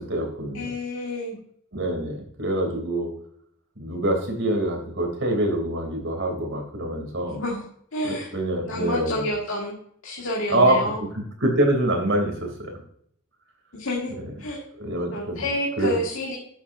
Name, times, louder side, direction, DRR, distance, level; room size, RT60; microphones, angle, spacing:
voice 1, 0.0-0.7 1.7-3.1 3.8-7.4 8.0-9.3 10.5-12.8 14.7-15.5 15.8-16.0, right 1 dB, 60° right, 2 dB, 3.1 m, -25 dB
voice 2, 0.5-1.4 7.3-7.6 7.9-8.3 8.6-9.8 10.0-11.0 13.7-14.6 15.1-16.4, left 1 dB, 70° left, -2 dB, 1.9 m, -29 dB
11.5 x 7.4 x 2.7 m, 0.64 s
head